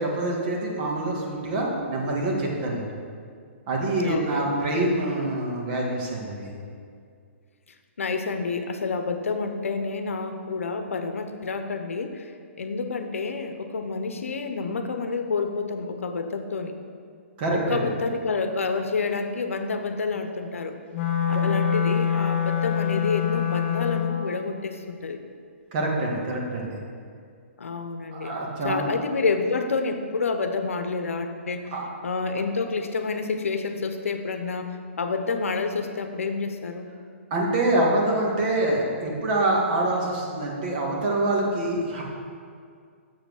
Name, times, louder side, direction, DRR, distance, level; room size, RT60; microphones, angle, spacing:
voice 1, 0.0-2.9 3.7-6.5 17.4-17.8 21.3-21.4 25.7-26.8 28.1-28.9 31.7-31.8 37.3-42.0, right 2 dB, 45° right, -2 dB, 1.9 m, -25 dB
voice 2, 4.0-4.6 8.0-12.3 12.6-16.8 17.5-20.8 21.3-25.2 27.6-28.4 28.6-31.7 32.0-36.9, left 4 dB, 85° left, 7 dB, 0.7 m, -29 dB
Wind instrument woodwind instrument, 20.9-24.3, left 8 dB, 55° left, 0.8 m, -25 dB
7.1 x 5.2 x 6.4 m, 2.2 s
hypercardioid pair, 140°, 7 cm